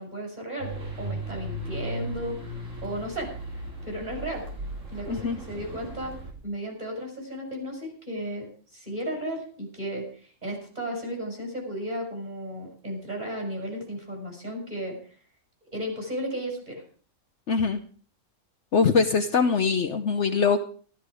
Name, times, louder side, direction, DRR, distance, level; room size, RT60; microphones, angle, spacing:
voice 1, 0.0-4.5 4.9-6.2 6.4-15.0 15.6-16.8, right 1 dB, 30° right, 0 dB, 5.7 m, -34 dB
sound 1, 0.6-6.3, right 1 dB, 60° right, 3.2 m, -36 dB
voice 2, 17.5-17.8 18.7-20.6, left 5 dB, 55° left, 7 dB, 1.1 m, -22 dB
13.5 x 13.0 x 4.8 m, 0.43 s
omnidirectional pair, 1.5 m